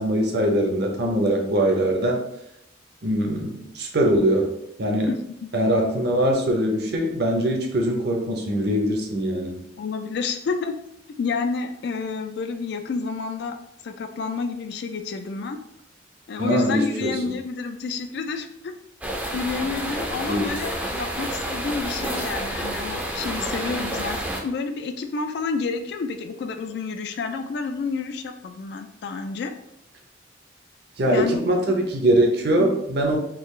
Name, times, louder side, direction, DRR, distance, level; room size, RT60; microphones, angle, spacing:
voice 1, 0.0-2.2 3.0-4.5 4.8-5.1 5.5-9.6 16.4-17.2 20.3-20.5 31.0-33.2, right 1 dB, 55° right, 2 dB, 0.7 m, -22 dB
voice 2, 5.1-5.5 9.8-10.8 11.2-13.6 13.8-15.6 16.3-18.7 19.3-29.5 31.1-31.8 32.6-32.7, left 4 dB, 60° left, 7 dB, 0.3 m, -29 dB
sound 1, 19.0-24.4, right 1 dB, 10° right, 0.4 m, -29 dB
3.7 x 2.4 x 3.1 m, 0.79 s
head